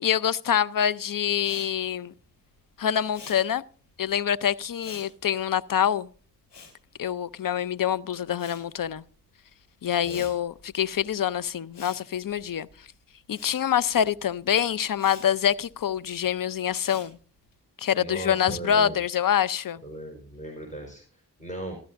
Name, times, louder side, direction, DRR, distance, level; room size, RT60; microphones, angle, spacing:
voice 1, 0.0-2.1 2.8-3.6 4.0-6.1 7.0-9.0 9.8-12.7 13.3-17.2 17.8-19.8, left 9 dB, 55° left, 0.7 m, -25 dB
Respiratory sounds, 1.3-7.8 8.1-17.5, left 4 dB, 90° left, 2.6 m, -50 dB
voice 2, 18.0-19.0 19.8-21.8, right 1 dB, 20° left, 4.5 m, -38 dB
15.5 x 12.5 x 2.6 m
cardioid pair, 40°, 41 cm